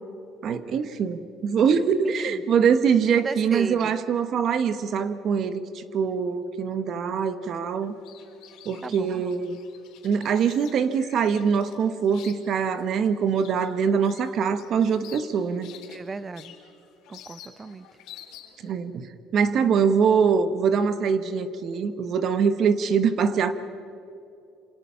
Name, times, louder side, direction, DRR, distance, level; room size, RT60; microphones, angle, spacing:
voice 1, 0.4-7.9 8.6-9.6 10.0-15.7 18.6-23.5, right 6 dB, 40° right, 11 dB, 1.1 m, -23 dB
voice 2, 3.2-3.9 8.8-9.2 15.9-16.6 17.1-17.9, right 4 dB, 20° right, 15 dB, 0.7 m, -35 dB
sound 1, 7.8-18.7, left 10 dB, 70° left, 3.6 m, -49 dB
27.5 x 27.0 x 5.7 m, 2.7 s
cardioid pair, 170°, 0 cm